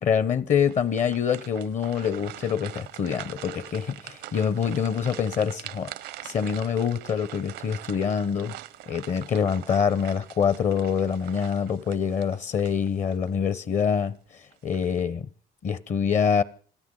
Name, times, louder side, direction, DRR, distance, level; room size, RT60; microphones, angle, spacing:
voice 1, 0.0-5.9 6.2-8.6 8.9-14.2 14.6-15.3 15.6-16.4, left 7 dB, 45° left, 0.9 m, -25 dB
sound 1, 0.6-13.3 13.8-13.9 14.5-15.0, right 15 dB, 85° right, 0.7 m, -43 dB
26.5 x 13.0 x 3.8 m
cardioid pair, 110°, 17 cm